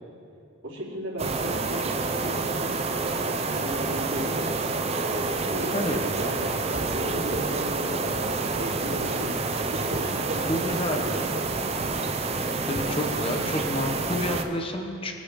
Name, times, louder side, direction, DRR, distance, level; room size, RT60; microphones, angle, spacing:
voice 1, 0.6-8.3 8.5-9.4 9.6-11.5, right 1 dB, 65° right, -7 dB, 3.4 m, -35 dB
sound 1, 1.2-14.4, right 3 dB, 30° right, 0.7 m, -28 dB
voice 2, 10.5-11.0 12.7-15.1, left 1 dB, 25° left, 3 dB, 0.9 m, -29 dB
22.0 x 8.1 x 3.6 m, 2.6 s
head